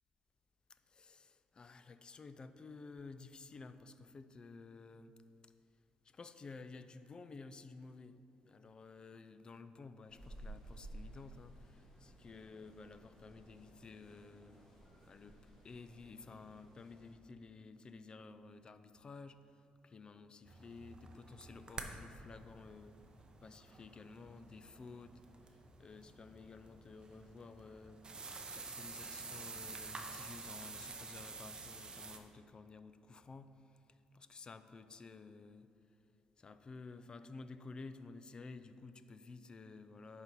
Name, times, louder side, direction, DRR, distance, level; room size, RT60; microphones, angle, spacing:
voice 1, 0.7-5.1 5.4-5.5 6.0-14.6 15.1-23.0 23.4-28.1 28.5-35.7 36.4-40.2, left 4 dB, 30° left, 11 dB, 0.4 m, -53 dB
sound 1, 10.1-17.1, right 1 dB, 15° left, 1.8 m, -55 dB
sound 2, 20.4-32.2, right 3 dB, 30° right, 0.7 m, -50 dB
11.0 x 4.1 x 4.5 m, 2.5 s
cardioid pair, 110°, 3 cm